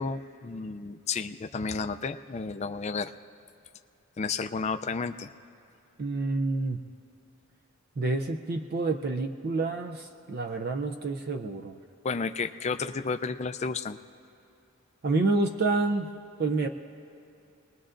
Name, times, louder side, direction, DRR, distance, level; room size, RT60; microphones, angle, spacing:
voice 1, 0.0-3.1 4.2-5.3 12.0-14.0, left 4 dB, 30° left, 8 dB, 0.4 m, -32 dB
voice 2, 6.0-6.8 8.0-11.8 15.0-16.1 16.4-16.7, right 3 dB, 45° right, 4 dB, 0.5 m, -28 dB
27.5 x 20.5 x 2.5 m, 2.7 s
head